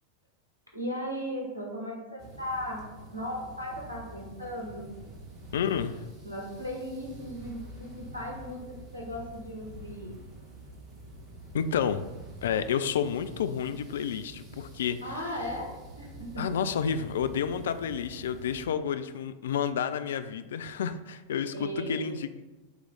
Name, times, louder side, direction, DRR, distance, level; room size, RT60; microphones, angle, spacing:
voice 1, 0.7-2.9 3.1-4.9 6.2-10.1 15.0-16.6 21.5-22.2, equal, 80° right, -2 dB, 1.7 m, -37 dB
sound 1, 2.2-18.7, right 1 dB, 35° right, 1.9 m, -47 dB
voice 2, 5.5-6.1 11.5-12.0 12.4-15.0 16.4-22.4, left 7 dB, 60° left, 11 dB, 0.3 m, -30 dB
8.0 x 3.2 x 3.9 m, 1.2 s
figure-of-eight pair, 90°, 0 cm